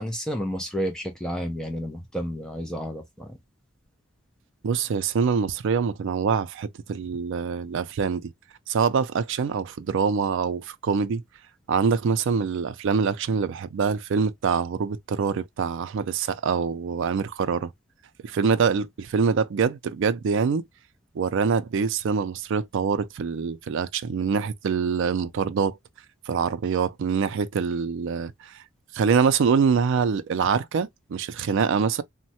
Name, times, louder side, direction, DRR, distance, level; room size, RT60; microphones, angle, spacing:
voice 1, 0.0-3.4, equal, 5° left, 0.4 m, -31 dB
voice 2, 4.6-8.3 8.7-11.2 11.7-17.7 18.2-20.6 21.1-25.8 26.3-28.5 28.9-32.0, right 6 dB, 60° right, 0.4 m, -25 dB
3.1 x 2.1 x 2.7 m
head